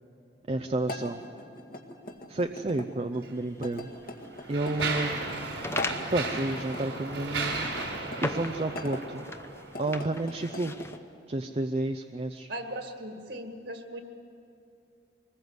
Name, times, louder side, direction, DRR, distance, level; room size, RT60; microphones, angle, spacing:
voice 1, 0.5-1.2 2.3-3.9 4.5-5.6 6.1-7.7 8.2-9.2 9.8-10.7 11.3-12.5, right 2 dB, 35° right, 7 dB, 0.6 m, -31 dB
sound 1, 0.8-2.9 3.6-4.9 5.6-6.8 7.7-9.0 9.6-11.0, left 1 dB, 50° left, 1.8 m, -41 dB
Mechanisms, 3.1-3.3 4.0-9.8, right 3 dB, 85° right, 4.2 m, -35 dB
sound 2, 3.3-11.0, left 2 dB, 15° left, 0.8 m, -40 dB
voice 2, 12.5-14.0, right 1 dB, 60° right, 5 dB, 2.0 m, -38 dB
23.5 x 20.0 x 8.0 m, 2.6 s
head